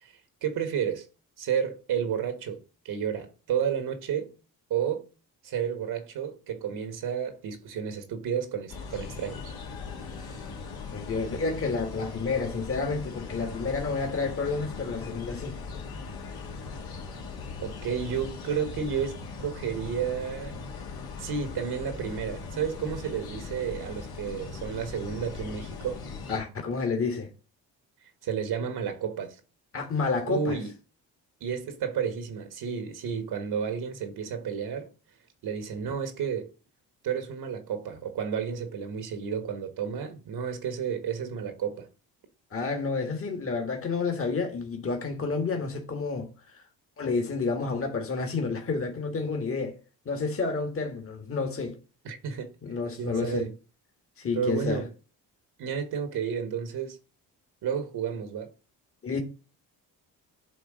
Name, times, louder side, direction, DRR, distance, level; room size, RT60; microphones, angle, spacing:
voice 1, 0.0-1.1 1.4-4.3 4.7-5.0 5.4-9.5 17.6-20.6 21.2-26.0 28.2-29.4 30.3-30.7 31.4-34.9 35.4-36.5 37.0-41.9 52.0-52.5 53.0-53.5 54.3-54.9 55.6-57.0 57.6-58.5, right 7 dB, 70° right, 1.4 m, -31 dB
sound 1, 8.7-26.4, left 4 dB, 65° left, 1.8 m, -39 dB
voice 2, 10.9-15.6 26.3-27.3 29.7-30.6 42.5-46.6 47.0-49.8 50.0-51.8 52.6-53.5 54.2-54.8 59.0-59.2, left 4 dB, 35° left, 1.6 m, -30 dB
9.3 x 3.2 x 5.0 m
supercardioid pair, 65°, 39 cm